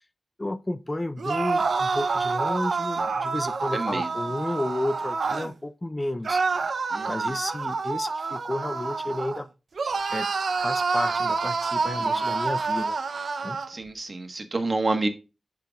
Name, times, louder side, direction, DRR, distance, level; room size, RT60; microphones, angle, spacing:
voice 1, 0.4-6.4 7.1-9.5 10.1-10.3 10.6-13.0 13.4-13.6, left 1 dB, 25° left, 0.5 m, -32 dB
sound 1, 1.2-5.5 6.2-9.4 9.8-13.7, right 4 dB, 70° right, 0.7 m, -27 dB
voice 2, 3.7-4.1 6.9-7.3 12.0-12.2 13.7-15.1, right 3 dB, 45° right, 1.3 m, -29 dB
9.0 x 5.7 x 2.4 m
cardioid pair, 60°, 0 cm